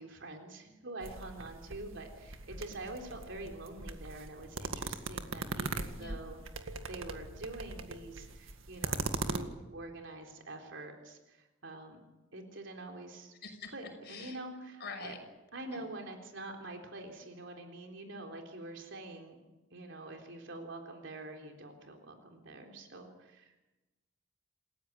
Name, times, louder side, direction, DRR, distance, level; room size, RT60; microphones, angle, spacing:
voice 1, 0.0-12.0 12.3-13.3 13.7-15.1 15.5-19.4 19.7-23.5, right 2 dB, 65° right, 3 dB, 3.7 m, -46 dB
sound 1, 1.0-9.4, right 3 dB, 85° right, 1.9 m, -40 dB
voice 2, 14.1-14.4 14.8-15.2 15.7-15.8, left 4 dB, 55° left, 4 dB, 6.1 m, -44 dB
28.0 x 16.0 x 9.0 m, 1.1 s
head